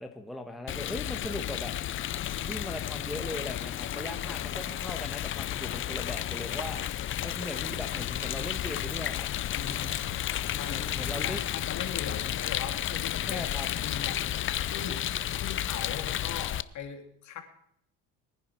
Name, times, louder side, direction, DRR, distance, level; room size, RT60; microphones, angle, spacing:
voice 1, 0.0-1.7 2.4-6.8 7.2-9.3 10.7-11.4 13.2-13.7, left 1 dB, ahead, 3 dB, 1.3 m, -39 dB
Rain, 0.7-16.6, left 12 dB, 35° left, 0.5 m, -32 dB
voice 2, 9.5-15.0 15.4-17.4, left 7 dB, 50° left, 5 dB, 2.7 m, -41 dB
22.0 x 10.0 x 4.5 m, 0.70 s
cardioid pair, 115°, 37 cm